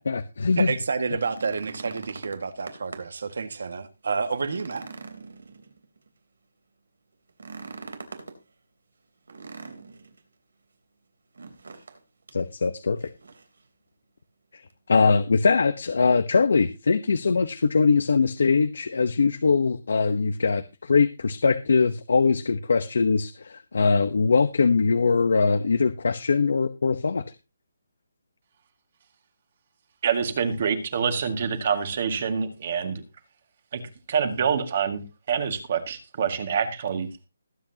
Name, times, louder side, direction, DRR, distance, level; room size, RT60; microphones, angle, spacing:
voice 1, 0.0-0.7 12.3-13.0 14.5-14.6 14.9-27.2, left 4 dB, 65° left, 1.0 m, -22 dB
voice 2, 0.6-4.8, right 4 dB, 60° right, 1.8 m, -29 dB
sound 1, 1.0-3.2 3.7-3.8 4.2-6.1 7.3-8.4 9.3-10.2 11.3-12.0 12.3-12.4 13.0-13.6 14.7-14.8, right 4 dB, 90° right, 3.6 m, -42 dB
voice 3, 30.0-33.0 33.7-33.8 34.1-35.0 35.3-37.3, right 6 dB, 35° right, 1.9 m, -26 dB
21.0 x 8.6 x 2.9 m
hypercardioid pair, 175°, 0 cm